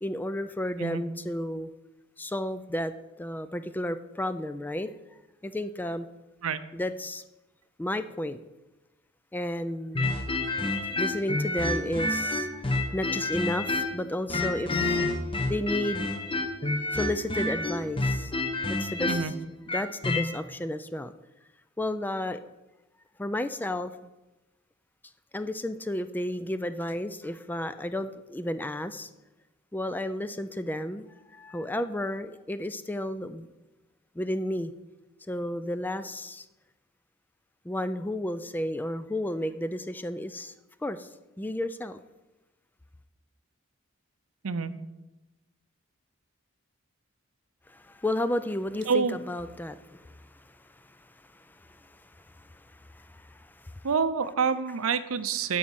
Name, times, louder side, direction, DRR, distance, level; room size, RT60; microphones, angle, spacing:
voice 1, 0.0-1.7 2.2-4.9 5.4-6.1 6.7-7.2 7.8-8.4 9.3-10.2 10.6-14.8 15.5-16.1 16.9-18.3 18.8-19.3 19.7-21.1 21.8-22.4 23.2-23.9 25.3-29.1 29.7-31.0 31.3-33.5 34.2-34.7 35.3-36.5 37.6-40.5 40.8-41.1 41.4-42.0 47.7-53.8, left 1 dB, 10° left, 11 dB, 0.3 m, -32 dB
sound 1, 10.0-14.0 14.3-20.3, left 2 dB, 25° left, 1.0 m, -28 dB
voice 2, 48.9-49.2 53.8-55.6, right 5 dB, 70° right, 12 dB, 0.6 m, -27 dB
11.5 x 4.2 x 7.2 m, 1.0 s
head